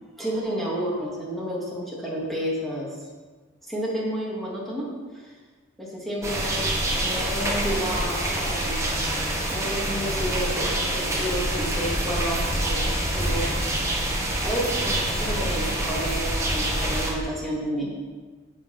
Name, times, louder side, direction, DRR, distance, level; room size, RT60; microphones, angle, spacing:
voice 1, 0.2-3.1 3.6-4.8 5.1-5.3 5.8-8.8 9.5-12.8 13.1-13.7 14.4-18.0, equal, ahead, -6 dB, 2.8 m, -30 dB
sound 1, 6.2-17.1, right 1 dB, 15° right, 1.9 m, -26 dB
8.8 x 8.4 x 5.8 m, 1.4 s
head